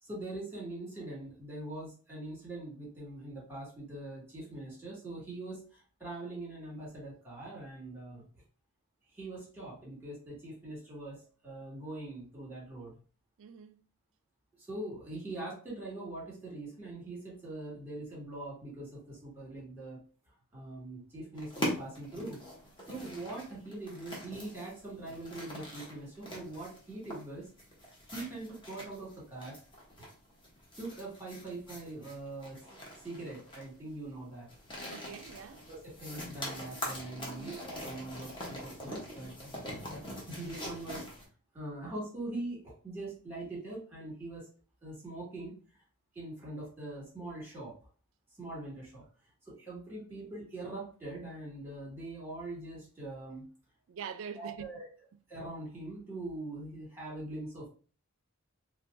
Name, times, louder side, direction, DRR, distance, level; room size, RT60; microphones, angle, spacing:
voice 1, 0.0-8.2 9.1-12.9 14.6-20.0 20.5-22.4 22.9-27.5 28.1-29.6 30.8-32.6 33.0-34.5 35.7-39.5 39.9-40.0 40.3-41.1 41.5-44.5 44.8-45.8 46.1-47.7 48.4-49.1 49.5-53.5 54.4-54.8 55.3-57.7, right 2 dB, 10° right, 1.8 m, -42 dB
voice 2, 13.4-13.8 34.9-35.6 37.2-37.6 53.9-54.7, right 7 dB, 60° right, 0.4 m, -44 dB
sound 1, 21.4-41.2, left 1 dB, 20° left, 0.9 m, -43 dB
4.5 x 2.2 x 2.6 m
head